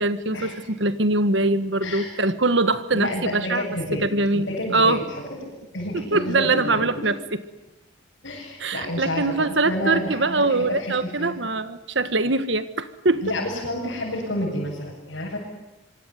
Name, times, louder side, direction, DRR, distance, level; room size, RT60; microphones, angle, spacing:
voice 1, 0.0-3.7 4.0-4.5 4.7-5.0 6.1-7.2 8.6-13.2, right 2 dB, 65° right, 12 dB, 1.6 m, -22 dB
voice 2, 1.8-2.1 2.9-4.1 4.3-5.2 5.7-7.1 8.2-11.4 13.2-15.4, left 1 dB, 70° left, -6 dB, 8.0 m, -29 dB
26.5 x 24.0 x 9.4 m, 0.96 s
head